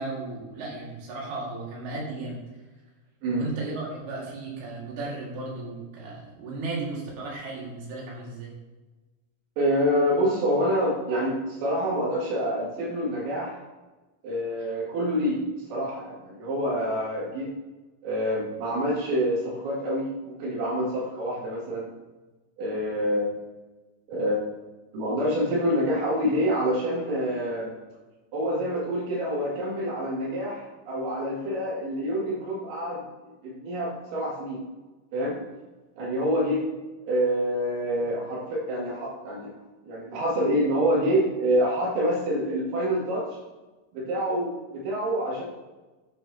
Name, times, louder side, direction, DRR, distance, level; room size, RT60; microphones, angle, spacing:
voice 1, 0.0-2.4 3.4-8.5, right 3 dB, 55° right, -4 dB, 4.0 m, -35 dB
voice 2, 9.6-13.6 14.2-15.4 15.7-17.5 18.0-21.9 22.6-23.3 24.1-24.4 24.9-27.8 28.3-33.0 33.4-34.6 35.1-35.4 36.0-36.6 37.1-39.5 39.8-43.4 43.9-45.4, equal, 80° right, -6 dB, 5.5 m, -27 dB
12.0 x 9.4 x 3.1 m, 1.2 s
omnidirectional pair, 5.9 m